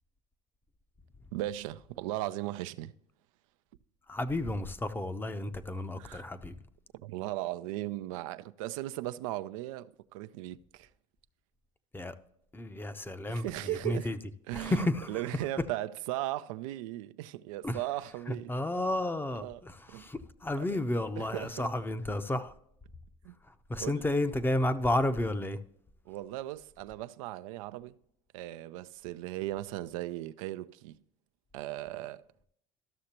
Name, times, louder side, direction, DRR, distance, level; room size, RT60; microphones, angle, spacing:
voice 1, 1.3-2.9 6.0-6.3 6.9-10.9 13.3-14.1 14.5-18.5 19.3-19.6 19.9-20.0 20.6-20.8 21.2-21.7 23.2-23.4 23.8-24.0 26.1-28.0 28.3-31.0 31.5-32.2, right 15 dB, 85° right, 0.4 m, -37 dB
voice 2, 4.1-6.5 11.9-12.2 12.5-14.2 14.5-15.2 17.6-17.8 18.3-22.5 23.7-25.6, left 1 dB, 10° left, 0.6 m, -32 dB
13.0 x 6.5 x 2.9 m
supercardioid pair, 85°, 17 cm